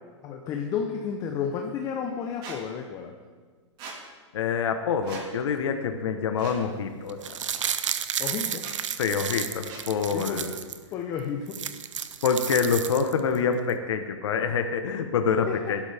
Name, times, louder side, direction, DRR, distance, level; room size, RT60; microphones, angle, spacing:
voice 1, 0.2-3.1 8.2-8.7 10.1-10.5 10.9-11.6 15.5-15.8, left 7 dB, 20° left, 2 dB, 0.9 m, -32 dB
Squeak, 2.4-2.6 3.8-4.0 5.0-5.3 6.4-6.6 7.6-7.7 8.5-8.7 9.7-9.9, right 4 dB, 30° right, 2.0 m, -40 dB
voice 2, 4.3-7.4 9.0-10.5 12.2-15.8, left 6 dB, 65° left, 6 dB, 1.2 m, -26 dB
sound 1, 7.1-10.8 11.2-11.3 11.5-13.4 13.7-13.8, right 8 dB, 80° right, 0.8 m, -32 dB
17.0 x 12.0 x 3.5 m, 1.5 s
hypercardioid pair, 155°, 16 cm